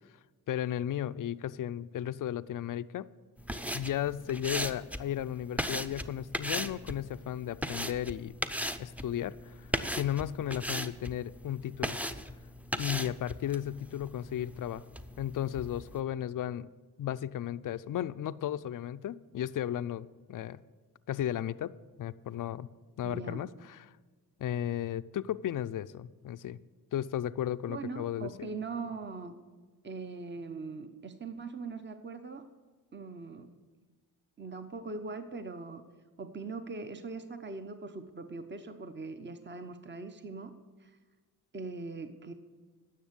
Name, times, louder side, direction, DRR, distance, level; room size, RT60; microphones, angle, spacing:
voice 1, 0.5-3.1 3.7-8.3 8.8-12.0 12.8-14.8 15.2-16.7 17.0-20.6 21.1-21.7 22.0-22.7 23.0-23.8 24.4-26.6 26.9-28.5, left 11 dB, 55° left, 15 dB, 0.5 m, -35 dB
sound 1, 3.4-16.0, equal, 5° right, 0.6 m, -38 dB
voice 2, 23.0-23.5 27.7-29.3 29.8-32.4 32.9-33.5 34.4-35.8 36.2-40.5 40.8-41.0 41.5-42.3, right 4 dB, 25° right, 8 dB, 0.9 m, -41 dB
10.0 x 6.6 x 8.1 m, 1.4 s
supercardioid pair, 45°, 40 cm